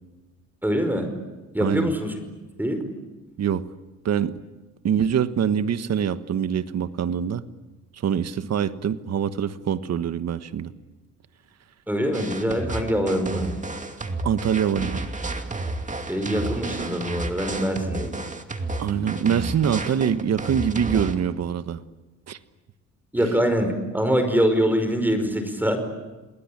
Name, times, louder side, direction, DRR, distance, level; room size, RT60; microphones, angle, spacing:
voice 1, 0.6-1.1 1.5-2.2 2.6-2.8 11.9-13.5 16.1-18.1 23.1-25.8, equal, 5° right, 7 dB, 5.2 m, -24 dB
voice 2, 1.6-1.9 3.4-3.7 4.0-4.4 4.8-7.4 8.0-10.7 14.2-15.0 18.8-21.8 22.3-22.4 23.2-23.3, right 8 dB, 60° right, 12 dB, 1.4 m, -24 dB
sound 1, 12.1-21.1, right 2 dB, 25° right, 2.5 m, -31 dB
29.5 x 20.0 x 8.7 m, 1.1 s
cardioid pair, 90°, 30 cm